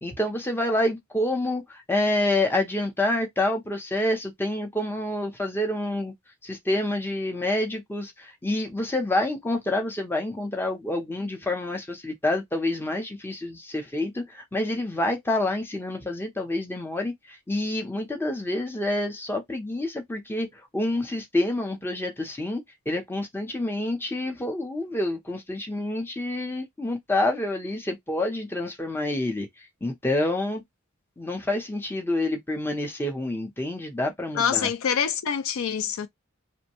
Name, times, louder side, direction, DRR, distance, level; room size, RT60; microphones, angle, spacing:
voice 1, 0.0-6.1 6.4-30.6 31.2-34.7, left 1 dB, 10° left, 0.6 m, -28 dB
voice 2, 34.4-36.1, left 7 dB, 80° left, 0.4 m, -25 dB
2.6 x 2.1 x 2.8 m
head